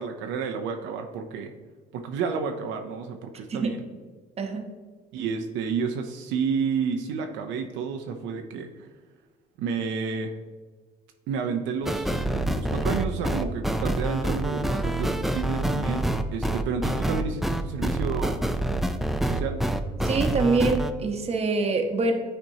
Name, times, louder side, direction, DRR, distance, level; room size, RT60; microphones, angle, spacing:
voice 1, 0.0-1.5 1.9-3.8 5.1-8.9 9.6-10.4 11.3-18.4 19.2-19.6, right 6 dB, 75° right, 4 dB, 0.6 m, -30 dB
sound 1, 11.8-20.9, right 1 dB, ahead, 0.3 m, -26 dB
voice 2, 20.0-22.1, right 3 dB, 30° right, 4 dB, 0.9 m, -25 dB
8.9 x 4.4 x 2.8 m, 1.4 s
supercardioid pair, 95°, 20 cm